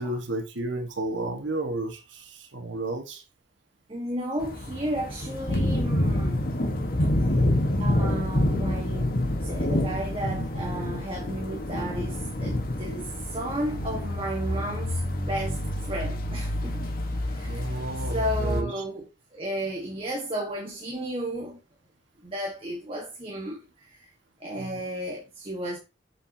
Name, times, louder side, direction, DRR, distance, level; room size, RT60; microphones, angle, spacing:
voice 1, 0.0-3.2 17.5-18.7 24.6-24.8, right 2 dB, 90° right, 1.6 m, -32 dB
voice 2, 3.9-6.5 7.8-9.1 9.4-17.0 17.2-17.8 18.1-21.6 22.2-24.1 24.4-25.8, right 1 dB, 30° right, 1.5 m, -33 dB
sound 1, 4.4-18.6, left 1 dB, 50° left, 1.3 m, -27 dB
7.5 x 6.7 x 2.8 m
head